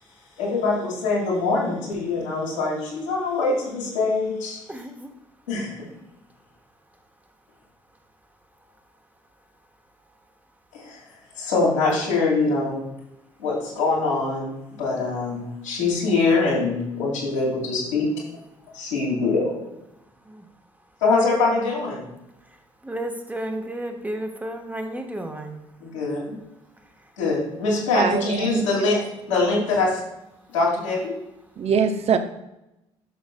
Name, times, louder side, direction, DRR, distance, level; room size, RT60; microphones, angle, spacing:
voice 1, 0.4-4.6 5.5-5.9 10.7-11.0 11.4-12.8 13.4-14.5 14.8-18.1 18.7-19.6 21.0-22.0 25.8-26.4 27.2-30.0 30.5-31.1, left 3 dB, 80° left, -6 dB, 2.4 m, -23 dB
voice 2, 4.7-5.1 20.3-20.4 22.8-25.5, right 1 dB, 10° right, 3 dB, 1.3 m, -32 dB
voice 3, 27.9-28.9 31.6-32.2, right 6 dB, 40° right, 9 dB, 0.8 m, -23 dB
11.0 x 6.3 x 2.3 m, 0.90 s
figure-of-eight pair, 50°, 16 cm